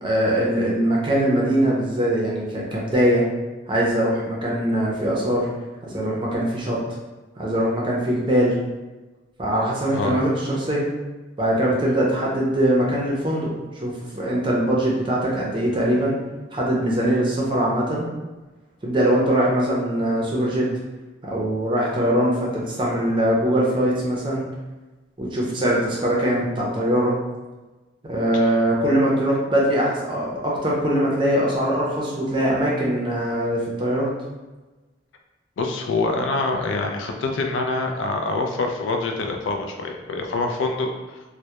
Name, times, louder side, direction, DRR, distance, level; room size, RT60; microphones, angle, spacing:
voice 1, 0.0-3.2 3.7-5.5 5.8-6.8 7.4-8.5 9.4-10.8 11.4-16.2 16.5-18.1 18.8-20.7 21.2-24.4 25.2-27.2 28.0-34.1, right 1 dB, 25° right, -4 dB, 0.5 m, -22 dB
voice 2, 35.6-41.2, left 3 dB, 80° left, 3 dB, 0.3 m, -25 dB
2.2 x 2.0 x 2.8 m, 1.2 s
head